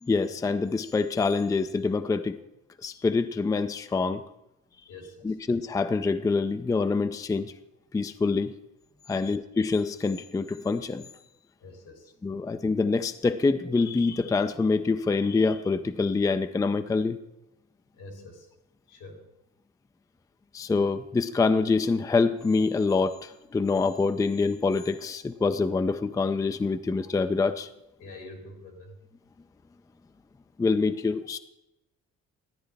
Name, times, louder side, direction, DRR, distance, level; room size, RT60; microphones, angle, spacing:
voice 1, 0.0-2.4 2.8-4.2 5.2-7.5 7.9-8.5 9.1-11.1 12.2-17.2 20.5-27.7 30.6-31.4, left 4 dB, 10° left, 11 dB, 0.4 m, -26 dB
voice 2, 4.9-5.4 9.1-9.3 11.6-12.2 17.9-18.5 18.9-19.2 28.0-28.9, left 2 dB, 80° left, 2 dB, 2.7 m, -46 dB
13.0 x 9.0 x 3.3 m, 0.90 s
cardioid pair, 90°, 30 cm